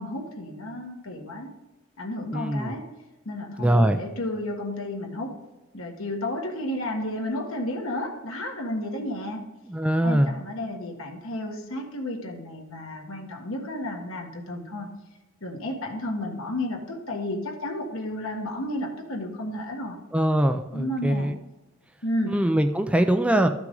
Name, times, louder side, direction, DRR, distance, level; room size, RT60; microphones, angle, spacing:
voice 1, 0.0-1.5 2.0-2.9 3.2-5.4 5.7-9.5 10.0-14.9 15.4-20.0 20.7-21.3 22.0-22.4, left 1 dB, 70° left, 2 dB, 1.5 m, -32 dB
voice 2, 2.3-2.7 3.6-4.0 9.7-10.3 20.1-21.3 22.3-23.5, right 1 dB, 5° right, 6 dB, 0.4 m, -22 dB
13.0 x 6.0 x 3.9 m, 1.0 s
head